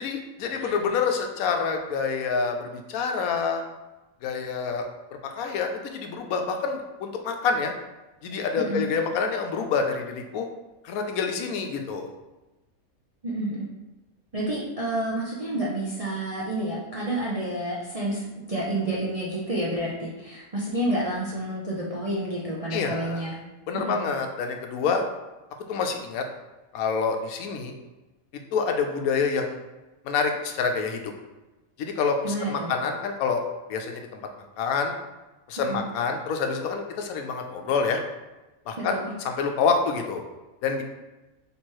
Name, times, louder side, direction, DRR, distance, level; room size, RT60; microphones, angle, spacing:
voice 1, 0.0-3.6 4.2-4.9 5.2-7.7 8.2-10.5 10.8-12.1 22.7-23.3 23.7-25.0 25.7-26.2 26.7-27.7 28.5-29.6 30.0-31.1 31.8-33.4 33.7-34.2 34.6-34.9 35.5-38.0 38.7-39.0 39.2-40.2 40.6-40.8, left 5 dB, 90° left, 4 dB, 1.1 m, -27 dB
voice 2, 13.2-13.7 14.3-23.4 23.9-24.0 32.2-32.7 35.7-35.8 38.8-39.1, right 1 dB, 45° right, -6 dB, 0.4 m, -29 dB
3.4 x 3.0 x 4.4 m, 1.1 s
omnidirectional pair, 1.5 m